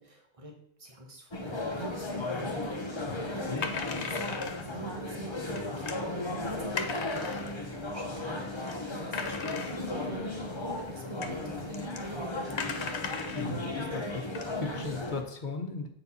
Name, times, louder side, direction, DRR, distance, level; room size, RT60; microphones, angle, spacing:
voice 1, 0.0-7.6 7.9-12.8, right 1 dB, 30° right, 1 dB, 1.4 m, -45 dB
sound 1, 1.3-15.2, left 2 dB, 25° left, 1.1 m, -35 dB
voice 2, 3.1-3.6 13.4-14.2 14.5-15.9, left 3 dB, 45° left, 4 dB, 1.1 m, -37 dB
sound 2, 3.6-4.7 5.5-6.0 6.8-7.6 8.3-8.4 8.7-8.8 9.1-10.1 10.9-11.0 11.2-11.4 11.7-12.0 12.5-13.5 14.0-14.1 14.4-14.9, left 5 dB, 85° left, 1.1 m, -37 dB
8.0 x 4.5 x 5.5 m, 0.71 s
omnidirectional pair, 1.1 m